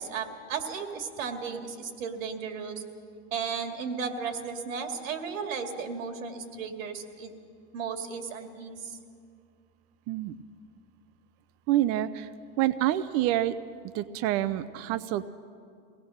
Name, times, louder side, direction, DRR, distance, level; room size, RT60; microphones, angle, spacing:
voice 1, 0.0-2.8 3.3-7.3 7.7-9.0, right 6 dB, 90° right, 5 dB, 2.4 m, -35 dB
voice 2, 11.7-12.3 12.6-13.6 13.9-15.3, right 14 dB, 40° right, 14 dB, 0.5 m, -27 dB
24.0 x 18.0 x 6.4 m, 2.3 s
supercardioid pair, 145°, 38 cm